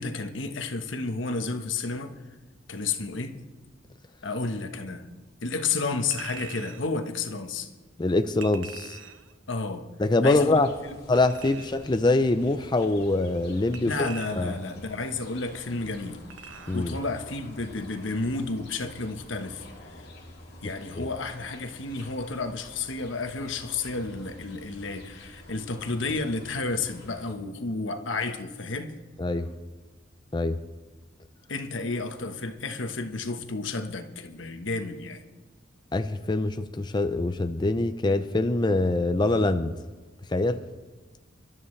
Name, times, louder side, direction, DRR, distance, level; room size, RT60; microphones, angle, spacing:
voice 1, 0.0-2.1 2.7-3.4 4.2-5.1 5.4-7.7 9.5-9.9 10.2-10.6 13.8-16.2 16.7-20.1 20.6-28.9 31.5-35.2, left 3 dB, 80° left, 1.2 m, -31 dB
Chink clink, 6.1-6.9 8.4-9.3 11.2-11.9 13.7-14.7 16.3-16.9 17.3-17.4, right 7 dB, 80° right, 0.9 m, -44 dB
voice 2, 8.0-9.0 10.0-10.7 11.1-14.5 16.7-17.0 21.0-21.1 29.2-29.5 30.3-30.6 35.9-39.8 40.3-40.6, left 2 dB, 25° left, 0.5 m, -24 dB
sound 1, 10.3-27.3, left 1 dB, 55° left, 2.5 m, -48 dB
25.5 x 12.5 x 3.2 m
head